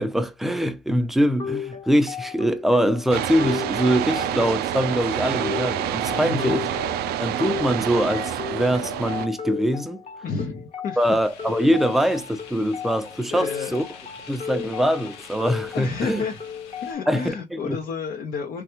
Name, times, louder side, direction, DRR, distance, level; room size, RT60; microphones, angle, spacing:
voice 1, 0.0-6.6 7.2-10.0 11.0-13.8 14.3-16.2 17.1-17.8, equal, ahead, 0.4 m, -23 dB
sound 1, 1.4-17.4, left 7 dB, 35° left, 1.1 m, -35 dB
sound 2, 3.1-9.3, right 11 dB, 70° right, 0.4 m, -27 dB
voice 2, 6.2-6.5 10.2-11.0 12.0-12.2 13.3-13.8 15.7-16.4 16.8-18.6, left 5 dB, 55° left, 0.7 m, -31 dB
sound 3, 11.0-16.9, left 6 dB, 90° left, 1.0 m, -45 dB
3.3 x 2.3 x 2.9 m
cardioid pair, 110°, 17 cm